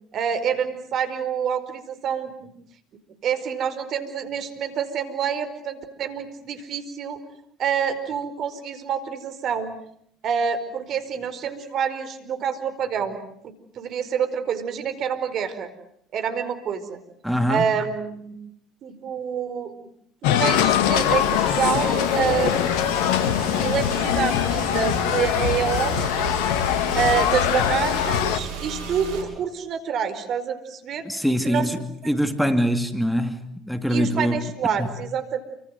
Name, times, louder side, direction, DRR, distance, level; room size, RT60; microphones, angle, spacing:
voice 1, 0.1-2.5 3.2-7.2 7.6-9.7 10.2-13.2 13.4-15.7 16.1-17.0 17.5-18.3 18.8-19.9 20.2-23.0 23.6-26.5 26.9-31.1 31.4-31.7 32.0-32.2 33.9-35.4, right 7 dB, 55° right, 4.7 m, -27 dB
voice 2, 17.2-17.6 31.0-31.8 32.1-34.4 34.8-34.9, equal, ahead, 2.5 m, -23 dB
sound 1, 20.2-28.4, left 11 dB, 75° left, 1.9 m, -22 dB
Car / Engine, 21.0-29.2, right 4 dB, 70° right, 7.1 m, -33 dB
30.0 x 24.5 x 7.9 m
hypercardioid pair, 65°, 0 cm